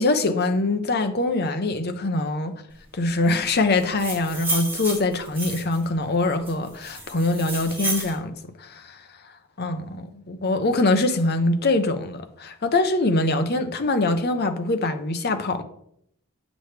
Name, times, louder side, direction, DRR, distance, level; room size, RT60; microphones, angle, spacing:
voice 1, 0.0-2.6 2.9-9.0 9.6-15.6, left 2 dB, 50° left, 0.8 m, -23 dB
sound 1, 3.8-5.8 6.4-8.1, right 2 dB, 10° right, 1.8 m, -31 dB
9.4 x 6.2 x 3.3 m
head